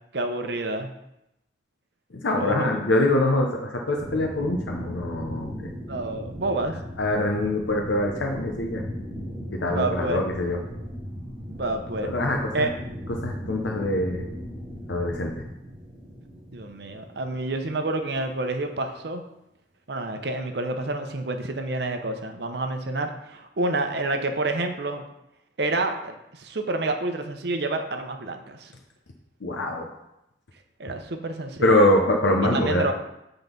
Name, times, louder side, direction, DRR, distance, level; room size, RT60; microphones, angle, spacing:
voice 1, 0.1-0.9 2.3-2.8 5.9-6.8 9.7-10.2 11.5-12.1 12.5-12.7 16.5-19.2 19.9-25.0 25.6-28.7 30.8-31.8 32.5-32.9, right 2 dB, 65° right, 5 dB, 0.7 m, -28 dB
voice 2, 2.1-5.7 7.0-8.8 9.5-10.6 12.0-12.7 13.1-14.3 14.9-15.5 29.4-30.0 31.6-32.9, left 1 dB, 85° left, 1 dB, 0.8 m, -24 dB
sound 1, 4.0-18.2, equal, 15° right, 2.8 m, -37 dB
8.0 x 4.0 x 5.2 m, 0.84 s
head